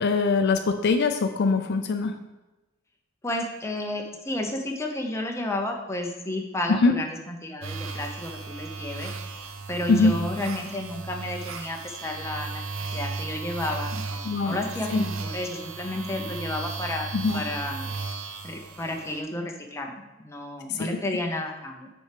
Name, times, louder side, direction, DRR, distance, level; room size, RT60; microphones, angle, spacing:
voice 1, 0.0-2.1 6.7-7.0 9.9-10.1 14.2-14.6 14.9-15.0 17.1-17.4 20.7-20.9, left 3 dB, 55° left, 7 dB, 0.4 m, -22 dB
voice 2, 3.2-9.1 9.7-17.9 18.4-21.9, left 1 dB, 15° left, 2 dB, 0.8 m, -32 dB
sound 1, 7.6-19.2, right 4 dB, 75° right, 0.6 m, -35 dB
6.3 x 4.3 x 5.0 m, 1.0 s
head